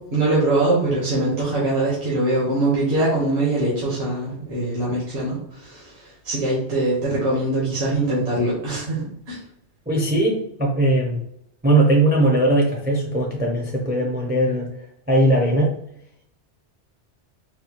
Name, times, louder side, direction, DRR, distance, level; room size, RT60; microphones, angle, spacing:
voice 1, 0.0-5.9 6.2-9.0 9.3-9.4, right 2 dB, 65° right, -6 dB, 1.4 m, -22 dB
voice 2, 9.9-11.2 11.6-14.7 15.1-15.7, right 1 dB, 15° right, -1 dB, 0.4 m, -19 dB
4.0 x 2.3 x 2.9 m, 0.74 s
omnidirectional pair, 1.2 m